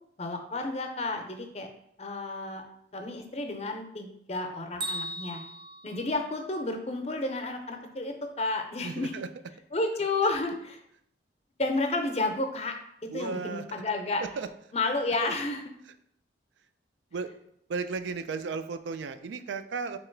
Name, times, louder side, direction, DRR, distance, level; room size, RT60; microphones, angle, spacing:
voice 1, 0.2-1.7 2.0-2.6 2.9-5.4 5.8-9.1 9.7-10.8 11.6-12.7 13.1-14.2 14.7-15.6, left 2 dB, 35° left, 4 dB, 0.5 m, -31 dB
Bell, 4.8-6.8, right 1 dB, 25° right, 0.5 m, -38 dB
voice 2, 8.8-9.3 13.1-13.8 14.2-14.5 15.2-15.3 17.1-17.3 17.7-20.0, right 4 dB, 80° right, 10 dB, 0.4 m, -34 dB
3.8 x 2.9 x 4.4 m, 0.73 s
head